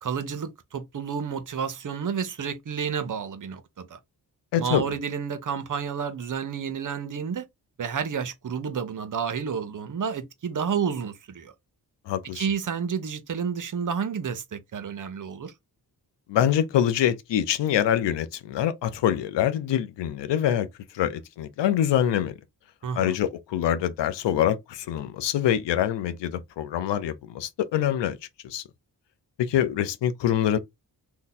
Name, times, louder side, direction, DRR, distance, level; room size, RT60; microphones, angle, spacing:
voice 1, 0.0-4.0 4.6-7.4 7.8-11.5 12.3-15.5 22.8-23.1, right 7 dB, 45° right, 0.7 m, -30 dB
voice 2, 4.5-4.8 12.1-12.4 16.3-20.7 20.9-22.3 22.9-28.2 28.4-28.6 29.4-30.6, left 10 dB, 85° left, 0.6 m, -25 dB
2.7 x 2.2 x 3.9 m
cardioid pair, 55°, 42 cm